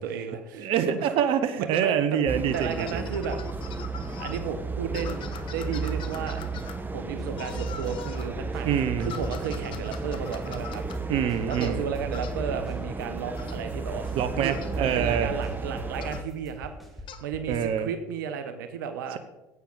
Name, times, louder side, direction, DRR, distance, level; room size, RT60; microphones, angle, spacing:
voice 1, 0.0-0.7 1.0-1.1 1.6-2.2 2.5-3.4 4.2-6.4 6.9-8.7 9.0-10.8 11.5-16.7 17.2-19.2, right 7 dB, 85° right, 8 dB, 1.0 m, -33 dB
voice 2, 0.5-3.0 8.6-9.1 11.1-11.9 14.2-15.3 17.5-17.9 19.1-19.2, right 8 dB, 65° right, 10 dB, 1.0 m, -26 dB
sound 1, 2.3-16.2, right 3 dB, 20° right, 1.3 m, -33 dB
sound 2, 2.5-4.4 4.9-6.8 7.4-8.3 9.0-11.0 11.5-11.8 12.1-12.4 13.4-13.6 14.5-14.7 16.0-16.3 17.1-17.2, left 8 dB, 55° left, 1.2 m, -43 dB
sound 3, 7.2-8.7 9.0-11.5 11.8-17.6, left 2 dB, ahead, 2.6 m, -43 dB
15.5 x 8.8 x 4.0 m, 0.99 s
hypercardioid pair, 75°, 10 cm